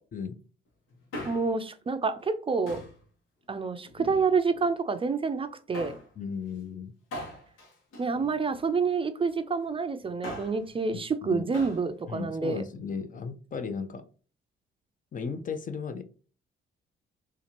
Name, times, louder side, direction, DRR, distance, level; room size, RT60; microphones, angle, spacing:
Male speech man speaking, 0.9-1.7 2.7-3.0 3.8-4.6 5.7-6.1 7.1-8.8 10.0-10.7 11.5-11.9 12.1-12.2, left 1 dB, 85° left, 1.1 m, -41 dB
voice 1, 1.3-2.8 3.5-6.0 8.0-12.6, right 4 dB, 25° right, 0.4 m, -28 dB
voice 2, 6.2-6.9 10.9-11.5 12.1-14.0 15.1-16.0, left 5 dB, 40° left, 0.6 m, -35 dB
4.2 x 2.4 x 2.9 m
cardioid pair, 90°, 20 cm